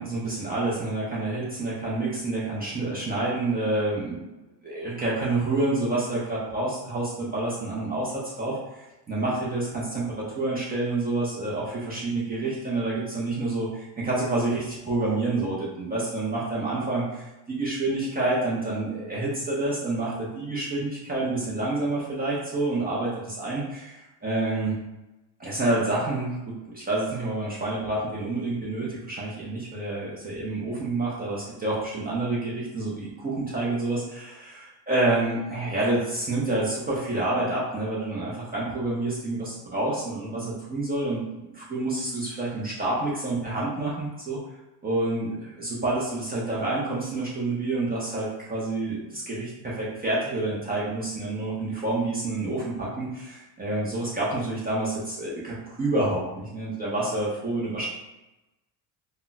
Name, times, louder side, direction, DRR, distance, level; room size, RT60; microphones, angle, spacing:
voice 1, 0.0-4.4 4.6-10.1 10.4-17.2 17.5-24.7 25.4-44.4 44.8-57.9, right 2 dB, 20° right, -6 dB, 0.3 m, -28 dB
2.2 x 2.1 x 3.8 m, 1.0 s
cardioid pair, 160°, 47 cm